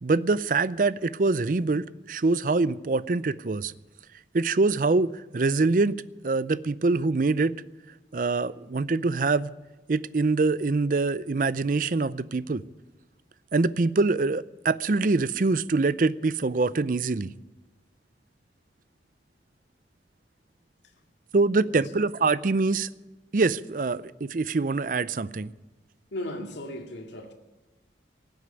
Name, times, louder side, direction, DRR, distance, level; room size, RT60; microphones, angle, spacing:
voice 1, 0.0-3.7 4.3-6.0 6.2-7.6 8.1-9.5 9.9-12.6 13.5-17.3 21.3-22.9 23.3-25.5, right 3 dB, 50° right, 0.5 m, -24 dB
voice 2, 21.5-21.9 26.1-27.3, left 1 dB, 85° left, 2.2 m, -37 dB
18.5 x 8.0 x 9.7 m
head